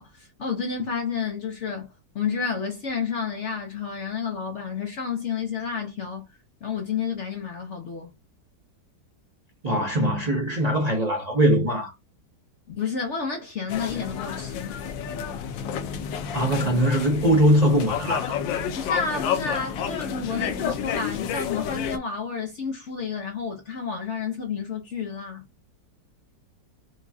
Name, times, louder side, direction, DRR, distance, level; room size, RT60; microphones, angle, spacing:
voice 1, 0.0-6.3 6.6-8.1 12.7-14.8 18.7-25.4, left 6 dB, 65° left, 0.7 m, -30 dB
voice 2, 9.6-11.9 16.3-18.4, equal, 90° right, 0.3 m, -21 dB
sound 1, 13.7-22.0, left 8 dB, 85° left, 1.3 m, -30 dB
4.8 x 2.3 x 2.6 m
omnidirectional pair, 2.0 m